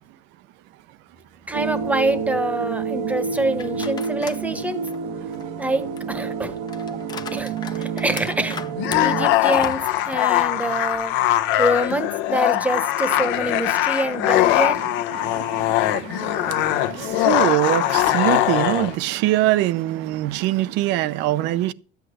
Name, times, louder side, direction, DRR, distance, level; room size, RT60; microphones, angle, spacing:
voice 1, 1.5-4.8 5.6-6.6 7.3-8.6 9.0-11.2 11.6-14.8, right 1 dB, 5° right, 1.1 m, -25 dB
sound 1, 1.5-9.3, right 6 dB, 90° right, 1.4 m, -29 dB
sound 2, 3.6-4.5 4.9-11.0 11.3-11.4 12.4-13.9, left 6 dB, 20° left, 0.6 m, -39 dB
sound 3, 8.8-18.9, left 14 dB, 65° left, 1.0 m, -21 dB
voice 2, 14.8-21.7, right 15 dB, 65° right, 0.7 m, -24 dB
13.0 x 8.2 x 6.3 m
cardioid pair, 165°, 20 cm